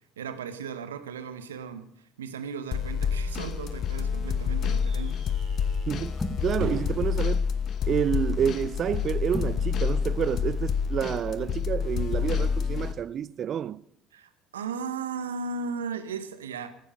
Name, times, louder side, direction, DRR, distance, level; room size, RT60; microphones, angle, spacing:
voice 1, 0.2-1.9 2.2-5.2 14.1-16.7, right 5 dB, 90° right, 0.9 m, -36 dB
sound 1, 2.7-12.9, left 6 dB, 50° left, 0.9 m, -28 dB
sound 2, 4.2-9.3, right 3 dB, 65° right, 5.0 m, -44 dB
sound 3, 5.1-5.3 6.1-6.7 8.1-8.6 9.3-9.7 9.9-10.0, left 2 dB, 15° left, 1.5 m, -36 dB
voice 2, 5.9-7.5 7.9-13.8, right 9 dB, 45° right, 0.4 m, -29 dB
13.5 x 9.7 x 5.2 m
hypercardioid pair, 70°, 0 cm